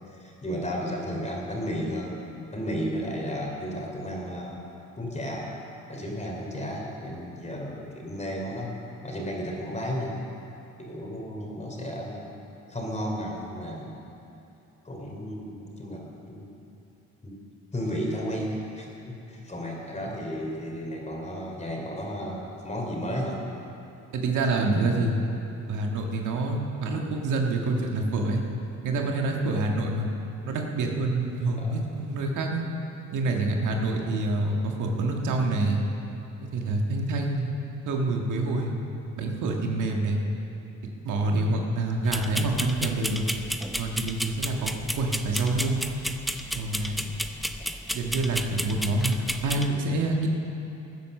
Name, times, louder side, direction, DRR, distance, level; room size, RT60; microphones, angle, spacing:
voice 1, 0.1-2.2 2.5-4.6 5.0-5.5 5.9-10.2 10.8-12.3 12.7-14.0 14.8-16.5 17.2-17.3 17.7-23.4 31.6-31.7 34.0-34.1, equal, 25° left, -1 dB, 3.4 m, -33 dB
voice 2, 24.1-25.2 25.7-28.4 28.8-30.1 30.4-32.6 33.1-35.8 36.4-37.5 37.8-38.7 39.2-40.2 41.0-43.2 43.8-44.7 45.0-45.8 46.5-47.1 47.9-50.3, right 2 dB, 80° right, 1 dB, 1.7 m, -27 dB
sound 1, 42.1-49.7, equal, ahead, 0.7 m, -33 dB
16.5 x 9.8 x 6.6 m, 2.9 s
cardioid pair, 90°, 30 cm